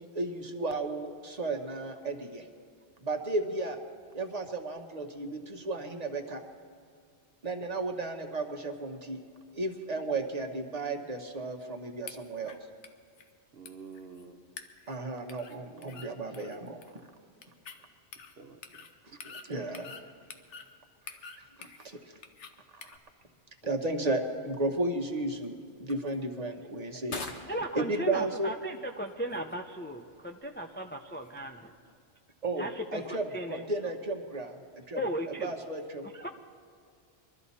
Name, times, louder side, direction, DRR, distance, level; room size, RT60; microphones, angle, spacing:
voice 1, 0.0-2.4 3.0-3.8 4.1-6.4 7.4-9.2 9.5-12.6 14.9-16.8 19.5-20.0 21.6-22.0 22.7-22.8 23.6-27.2 27.7-28.5 32.4-35.0 35.3-36.1, right 2 dB, 35° right, 3 dB, 1.2 m, -34 dB
sound 1, 12.1-12.6 12.8-12.9 13.2-13.3 13.7-14.2 14.6-14.9 15.3-15.6 15.8-16.1 16.3-17.0 17.4-17.8 18.1-18.3 18.6-18.9 19.2-20.0 20.3-20.7 21.1-21.9 22.2-22.5 22.8-23.0, left 6 dB, 90° left, 1.2 m, -47 dB
voice 2, 13.5-14.4 15.5-16.1 18.3-18.9 19.3-19.7, right 5 dB, 60° right, 6 dB, 1.1 m, -50 dB
sound 2, 22.8-32.0, left 3 dB, 75° left, 1.6 m, -50 dB
voice 3, 27.5-31.7 32.6-33.0 33.3-33.6 35.0-35.5 36.1-36.3, equal, 15° left, 3 dB, 0.4 m, -36 dB
22.5 x 13.0 x 4.2 m, 2.3 s
omnidirectional pair, 1.2 m